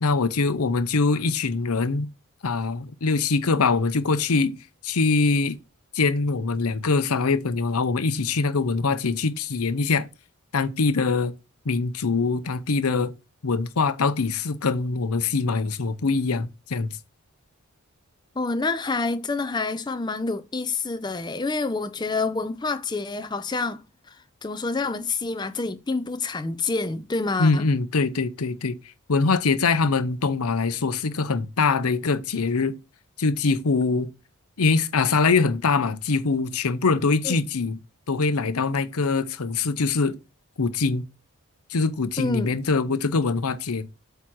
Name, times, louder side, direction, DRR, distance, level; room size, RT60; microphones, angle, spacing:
voice 1, 0.0-2.1 2.4-4.6 4.8-5.6 5.9-10.1 10.5-11.3 11.7-13.1 13.4-16.9 27.4-28.8 29.1-32.7 33.2-34.1 34.6-37.8 38.1-40.2 40.6-41.0 41.7-43.9, left 4 dB, 80° left, 0.7 m, -23 dB
voice 2, 18.4-23.8 24.1-24.2 24.4-27.7 37.2-37.5 42.2-42.5, left 3 dB, 20° left, 0.5 m, -27 dB
8.1 x 2.9 x 6.2 m
head